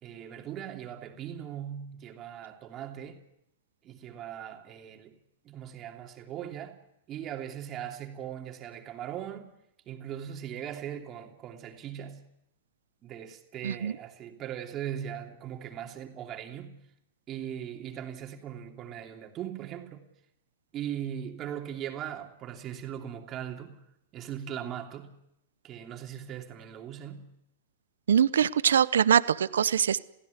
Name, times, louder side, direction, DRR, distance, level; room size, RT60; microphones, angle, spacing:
voice 1, 0.0-3.2 3.8-6.8 7.1-9.5 9.8-12.2 13.0-16.8 17.3-20.0 20.7-23.8 24.1-25.1 25.6-27.3, right 10 dB, 35° right, 3.0 m, -39 dB
voice 2, 28.1-30.0, right 8 dB, 85° right, 0.8 m, -23 dB
22.5 x 16.0 x 8.3 m
hypercardioid pair, 115°, 0 cm